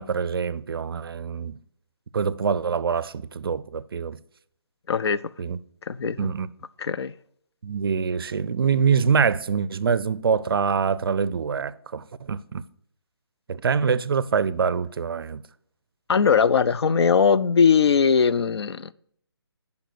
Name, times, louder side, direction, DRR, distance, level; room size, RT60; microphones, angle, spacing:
voice 1, 0.0-1.6 2.1-4.2 5.4-5.6 6.2-6.5 7.6-12.6 13.5-15.4, right 6 dB, 60° right, 0.4 m, -25 dB
voice 2, 4.9-5.2 5.9-6.3 6.8-7.1 16.1-18.9, left 6 dB, 70° left, 0.4 m, -20 dB
6.8 x 5.3 x 5.9 m
hypercardioid pair, 165°, 14 cm